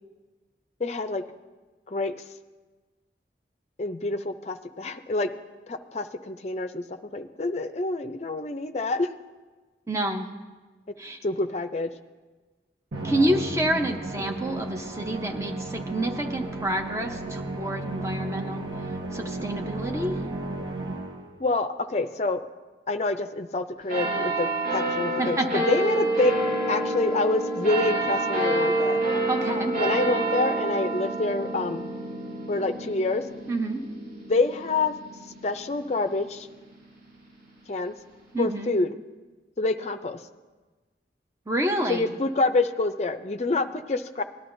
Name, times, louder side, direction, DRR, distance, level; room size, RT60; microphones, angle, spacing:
voice 1, 0.8-1.2 1.9-2.1 3.8-5.3 5.7-9.1 11.2-11.9 21.4-22.4 22.9-26.3 26.7-29.0 29.7-31.8 32.5-33.2 34.3-34.9 35.4-36.5 37.7-37.9 38.4-38.9 39.6-40.2 41.9-44.2, left 2 dB, 35° left, 9 dB, 0.5 m, -27 dB
voice 2, 9.9-10.3 11.0-11.2 13.0-20.1 25.2-25.6 29.3-29.7 33.5-33.8 38.3-38.7 41.5-42.1, right 1 dB, 15° right, 3 dB, 0.8 m, -28 dB
Musical instrument, 12.9-21.4, right 2 dB, 80° right, 1.1 m, -34 dB
sound 1, 23.9-36.8 37.4-37.5, right 1 dB, 50° right, 3.4 m, -28 dB
18.5 x 11.5 x 2.6 m, 1.3 s
head